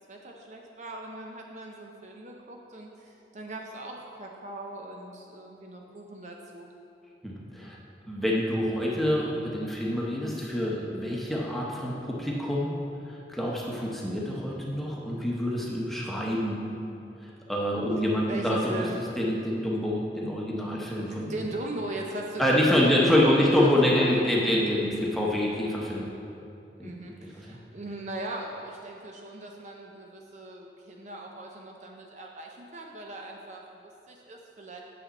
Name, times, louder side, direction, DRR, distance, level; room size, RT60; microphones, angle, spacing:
voice 1, 0.1-6.7 18.3-19.0 21.1-23.5 24.0-24.3 26.8-34.8, right 2 dB, 40° right, 0 dB, 0.5 m, -39 dB
voice 2, 7.2-7.8 8.0-12.7 13.3-16.6 17.5-18.8 19.2-21.4 22.4-26.1 26.8-26.9 27.5-27.6, left 1 dB, ahead, -4 dB, 0.9 m, -26 dB
8.4 x 6.8 x 4.1 m, 2.7 s
head